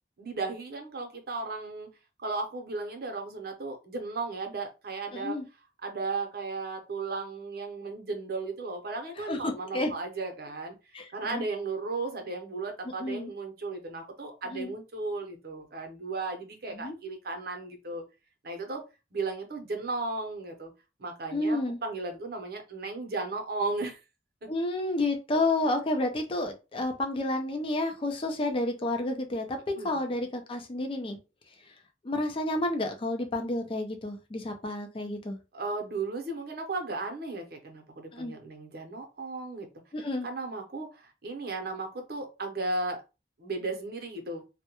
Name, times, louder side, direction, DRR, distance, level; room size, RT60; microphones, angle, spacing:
voice 1, 0.2-1.9 2.2-5.4 5.8-10.7 11.1-18.0 18.4-18.8 19.1-20.7 21.0-24.0 24.4-24.5 29.8-30.0 35.5-39.7 40.2-43.0 43.4-44.4, right 3 dB, 60° right, 4 dB, 0.7 m, -35 dB
voice 2, 5.1-5.4 9.2-9.9 10.9-11.4 13.0-13.3 14.5-14.7 16.8-16.9 21.3-21.8 24.5-29.6 29.8-31.2 32.0-35.4 38.1-38.3 39.9-40.3, left 2 dB, 30° left, 5 dB, 0.4 m, -30 dB
2.2 x 2.1 x 2.9 m, 0.28 s
head